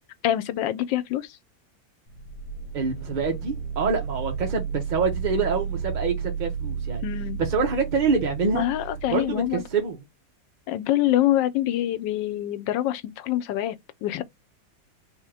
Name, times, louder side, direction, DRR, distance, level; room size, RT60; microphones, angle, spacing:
voice 1, 0.2-1.4 7.0-7.4 8.5-9.6 10.7-14.2, left 13 dB, 90° left, 1.3 m, -25 dB
sound 1, 2.1-9.9, right 7 dB, 65° left, 1.5 m, -33 dB
voice 2, 2.7-7.0 7.4-8.6 9.1-10.0, right 4 dB, 40° right, 0.7 m, -26 dB
3.5 x 2.9 x 4.7 m
omnidirectional pair, 2.0 m